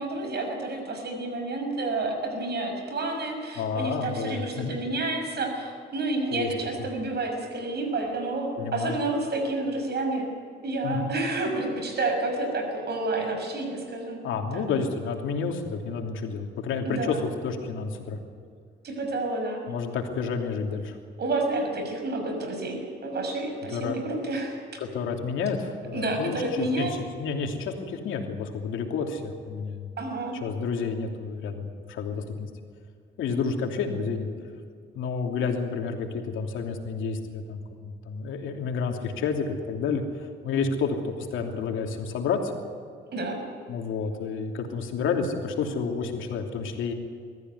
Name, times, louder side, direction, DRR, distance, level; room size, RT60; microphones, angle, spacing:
voice 1, 0.0-10.3 10.6-14.3 14.5-14.6 16.8-17.2 18.8-19.7 21.2-24.6 25.9-27.0 30.0-30.3 43.1-43.4, right 2 dB, 55° right, 4 dB, 6.1 m, -29 dB
voice 2, 3.6-4.8 6.3-6.5 6.8-6.9 8.6-8.9 10.8-11.1 14.2-18.2 19.7-21.0 23.7-24.1 24.8-29.9 30.3-32.5 33.2-34.3 34.9-42.5 43.7-46.9, left 5 dB, 80° left, 3 dB, 3.0 m, -30 dB
22.0 x 14.5 x 9.6 m, 2.3 s
cardioid pair, 90°, 20 cm